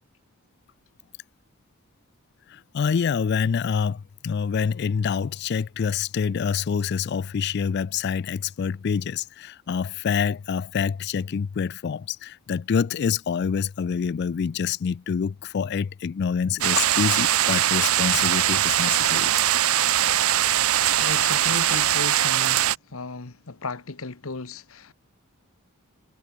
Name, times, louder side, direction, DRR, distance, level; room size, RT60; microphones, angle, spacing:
voice 1, 2.5-19.3, left 6 dB, 50° left, 0.3 m, -26 dB
sound 1, 16.6-22.8, right 12 dB, 80° right, 0.9 m, -21 dB
voice 2, 21.0-24.9, left 3 dB, 70° left, 1.3 m, -35 dB
head